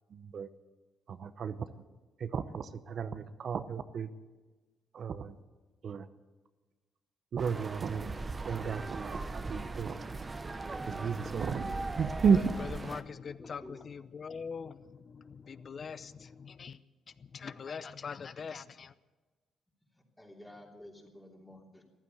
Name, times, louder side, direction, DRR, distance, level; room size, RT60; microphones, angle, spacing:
voice 1, 0.1-0.5 1.1-1.7 2.2-4.1 4.9-5.4 5.8-6.1 7.3-8.1 8.4-10.0 10.9-12.5, right 6 dB, 55° right, 11 dB, 0.8 m, -33 dB
sound 1, 7.4-13.0, right 3 dB, 25° right, 0.9 m, -39 dB
voice 2, 12.3-16.8 17.2-18.9, left 6 dB, 45° left, 15 dB, 0.7 m, -43 dB
voice 3, 13.4-13.7 19.9-21.8, left 1 dB, 10° left, 1 dB, 3.2 m, -52 dB
14.5 x 11.5 x 7.9 m, 1.2 s
cardioid pair, 90°, 0 cm